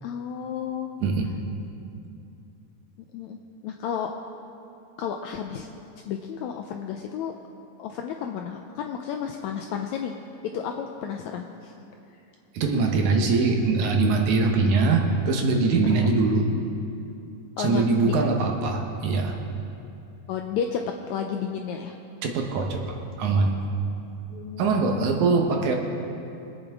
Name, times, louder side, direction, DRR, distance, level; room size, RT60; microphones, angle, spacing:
voice 1, 0.0-0.9 3.1-3.4 3.6-4.1 5.0-5.7 6.0-7.3 7.8-10.1 10.5-11.7 15.9-16.1 17.6-18.1 20.3-20.8 21.1-21.9 24.3-25.3, left 8 dB, 90° left, 3 dB, 1.6 m, -32 dB
voice 2, 12.5-16.5 17.6-19.4 22.2-23.6 24.6-25.8, right 3 dB, 70° right, 2 dB, 2.3 m, -22 dB
23.5 x 8.9 x 3.5 m, 2.7 s
omnidirectional pair, 3.8 m